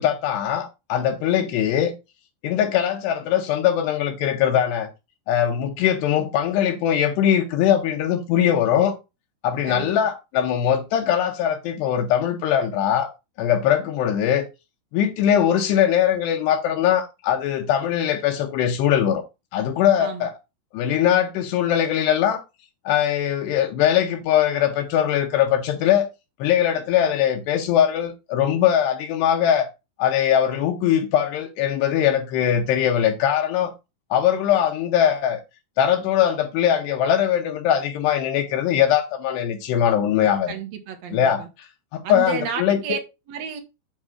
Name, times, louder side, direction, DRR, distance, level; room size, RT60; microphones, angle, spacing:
voice 1, 0.0-1.9 2.4-4.9 5.3-8.9 9.4-13.1 13.4-14.5 14.9-19.2 19.5-20.3 20.7-22.4 22.9-26.1 26.4-29.7 30.0-33.7 34.1-35.4 35.8-40.5 41.1-41.4 41.9-42.8, left 10 dB, 75° left, 3.0 m, -21 dB
voice 2, 20.0-20.3 40.5-41.5 42.0-43.0 43.3-43.6, right 8 dB, 70° right, 1.6 m, -31 dB
8.8 x 3.2 x 6.2 m
omnidirectional pair, 5.0 m